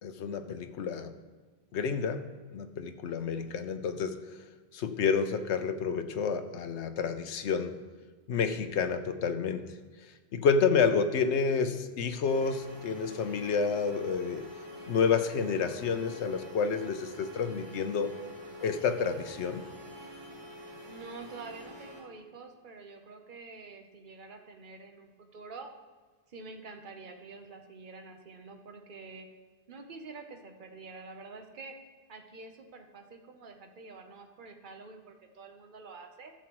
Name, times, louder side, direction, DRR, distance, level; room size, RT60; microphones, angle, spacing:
voice 1, 0.0-1.1 1.7-2.2 2.5-4.4 4.7-7.8 8.3-9.7 10.3-14.5 14.9-18.1 18.6-19.6, left 5 dB, 90° left, 9 dB, 1.0 m, -29 dB
voice 2, 3.1-3.5 20.9-25.7 26.3-29.3 29.7-31.7 32.1-36.3, right 4 dB, 50° right, 4 dB, 1.0 m, -47 dB
sound 1, 12.2-22.0, left 1 dB, 30° right, 3.4 m, -46 dB
13.0 x 7.3 x 3.1 m, 1.4 s
omnidirectional pair, 1.1 m